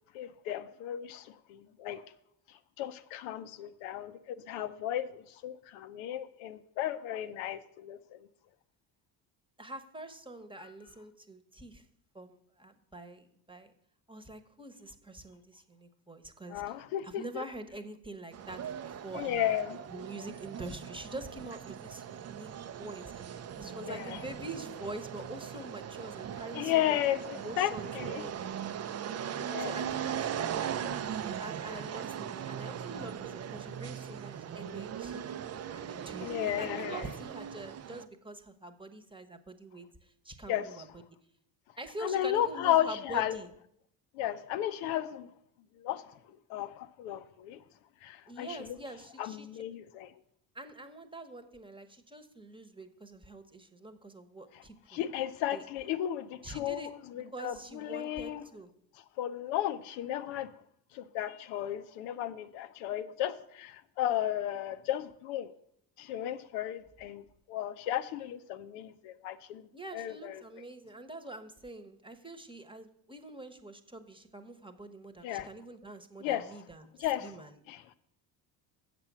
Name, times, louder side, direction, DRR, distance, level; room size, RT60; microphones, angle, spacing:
voice 1, 0.1-2.0 2.8-8.3 16.5-17.4 19.1-19.8 23.8-24.2 26.5-28.2 29.5-29.8 36.2-37.0 40.5-40.7 42.0-43.4 44.1-45.3 45.8-46.2 46.5-47.6 48.0-48.8 49.2-50.1 54.9-58.4 59.2-60.5 60.9-65.5 66.0-67.2 67.5-69.7 69.9-70.4 75.2-75.5 76.2-76.5 77.0-77.3 77.7-77.9, left 12 dB, 75° left, 10 dB, 0.7 m, -34 dB
voice 2, 9.6-11.8 12.1-13.7 14.1-16.8 17.0-19.5 19.9-22.5 22.8-23.3 23.6-27.0 27.3-28.3 29.3-35.3 35.7-41.0 41.8-43.5 48.3-49.6 50.5-55.0 55.5-55.6 56.4-56.9 57.3-58.7 69.7-77.6, right 2 dB, 10° right, 8 dB, 1.1 m, -45 dB
sound 1, 18.3-38.1, right 9 dB, 30° right, 0.5 m, -39 dB
7.5 x 6.0 x 7.3 m, 0.71 s
hypercardioid pair, 60°, 49 cm